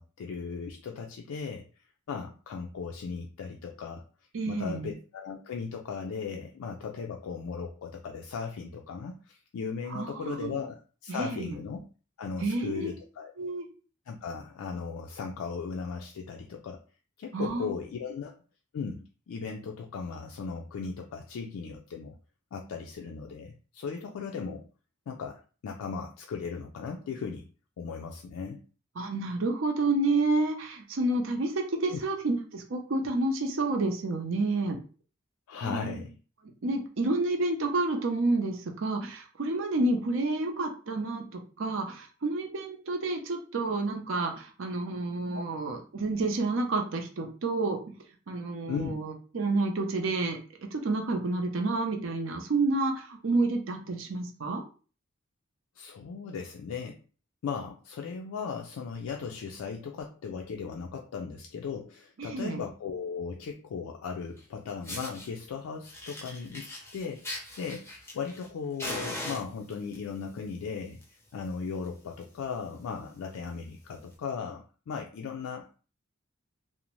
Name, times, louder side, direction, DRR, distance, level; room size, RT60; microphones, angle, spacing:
voice 1, 0.0-1.7 2.1-4.0 4.5-11.8 12.2-13.3 14.1-16.8 17.2-18.3 18.7-22.2 22.5-24.7 25.1-27.5 27.8-28.6 31.9-32.0 35.5-36.2 45.3-45.5 48.7-49.0 55.8-57.0 57.4-66.6 66.9-67.9 68.1-71.0 71.3-75.8, left 5 dB, 85° left, 2 dB, 0.3 m, -37 dB
voice 2, 4.3-4.9 9.9-10.6 11.1-11.6 12.4-12.9 13.4-13.7 17.3-17.7 29.0-34.8 35.6-36.0 36.6-47.8 48.3-54.6 62.2-62.6, right 2 dB, 70° right, 3 dB, 0.5 m, -29 dB
Fire, 64.4-64.5 64.8-65.3 65.8-68.5 68.8-70.0 70.8-71.0 71.4-71.5 71.8-71.9 72.2-72.4 73.0-73.1 74.0-74.1, left 1 dB, 10° left, 0.5 m, -39 dB
2.5 x 2.0 x 3.0 m, 0.37 s
head